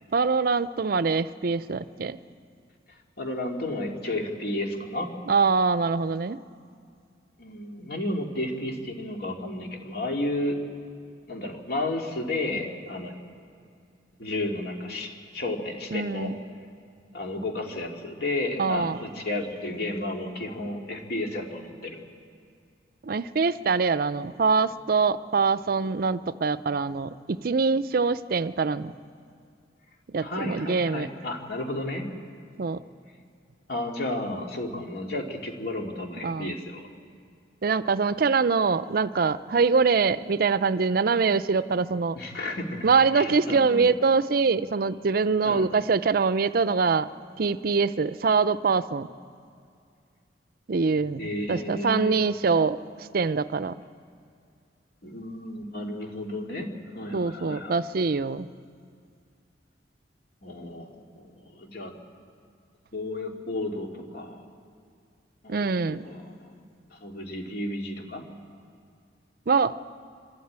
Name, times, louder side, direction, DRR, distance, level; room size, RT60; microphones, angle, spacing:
voice 1, 0.1-2.2 5.3-6.4 15.9-16.4 18.6-19.0 23.0-28.9 30.1-31.1 32.6-32.8 36.2-36.6 37.6-42.2 42.8-47.1 47.4-49.1 50.7-53.7 57.1-58.5 65.5-66.0 69.5-69.7, right 4 dB, 55° right, 15 dB, 0.5 m, -24 dB
voice 2, 3.2-5.1 7.4-10.6 11.3-13.1 14.2-16.3 17.1-22.0 30.2-32.0 33.7-36.9 42.1-43.8 45.4-45.7 51.2-52.2 55.0-56.7 56.9-57.8 60.4-61.9 62.9-64.4 65.4-66.5 66.9-68.2, left 1 dB, 60° left, 2 dB, 2.4 m, -32 dB
25.5 x 13.0 x 8.8 m, 2.3 s
head